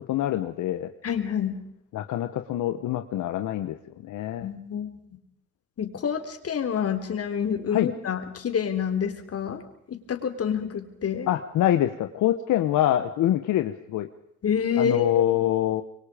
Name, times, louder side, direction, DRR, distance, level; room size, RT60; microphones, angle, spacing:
voice 1, 0.1-0.9 1.9-3.8 4.0-4.5 7.7-7.9 11.3-14.1 14.8-15.8, left 12 dB, 85° left, 8 dB, 1.3 m, -25 dB
voice 2, 1.0-1.6 4.4-5.0 5.8-9.6 9.9-11.3 14.4-15.2, left 7 dB, 50° left, 7 dB, 3.8 m, -27 dB
26.5 x 23.0 x 5.2 m, 0.76 s
cardioid pair, 90°, 30 cm